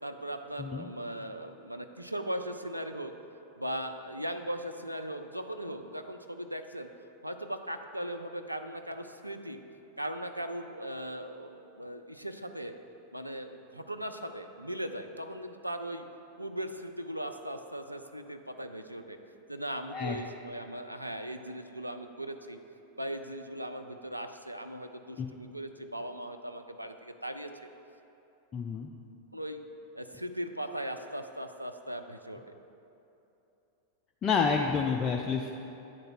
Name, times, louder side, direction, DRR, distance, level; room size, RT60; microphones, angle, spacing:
voice 1, 0.0-3.1 3.6-6.9 7.2-9.6 10.0-12.8 13.1-16.0 16.4-19.2 19.5-22.6 23.0-27.7 29.3-29.6 29.9-32.5, right 1 dB, 90° right, 6 dB, 0.4 m, -38 dB
voice 2, 28.5-28.9 34.2-35.5, left 5 dB, 25° left, 2 dB, 0.4 m, -29 dB
9.0 x 3.9 x 5.9 m, 2.9 s
figure-of-eight pair, 90°, 0 cm